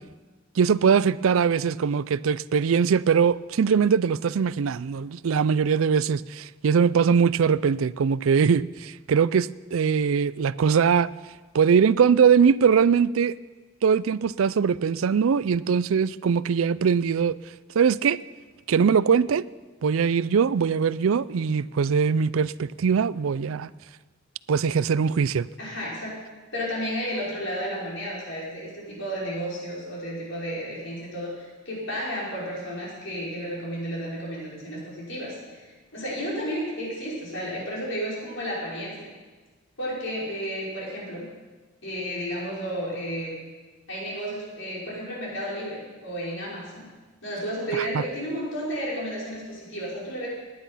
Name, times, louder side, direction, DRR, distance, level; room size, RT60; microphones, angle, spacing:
voice 1, 0.6-11.1 11.5-13.4 13.8-17.4 17.8-18.2 18.7-19.4 19.8-23.7 24.5-25.5 47.8-48.0, right 6 dB, 90° right, 0.4 m, -21 dB
voice 2, 25.6-26.2 26.5-39.1 39.8-41.3 41.8-43.3 43.9-46.9 47.2-50.3, equal, 70° left, 5.6 m, -32 dB
18.0 x 10.5 x 5.7 m
head